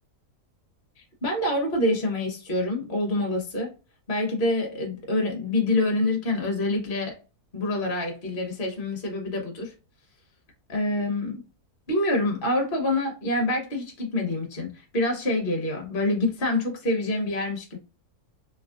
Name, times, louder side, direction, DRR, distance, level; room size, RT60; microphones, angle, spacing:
voice 1, 1.0-3.7 4.1-7.2 7.5-9.7 10.7-11.4 11.9-17.8, left 1 dB, 45° left, 0.8 m, -26 dB
3.6 x 2.9 x 2.4 m
omnidirectional pair, 1.7 m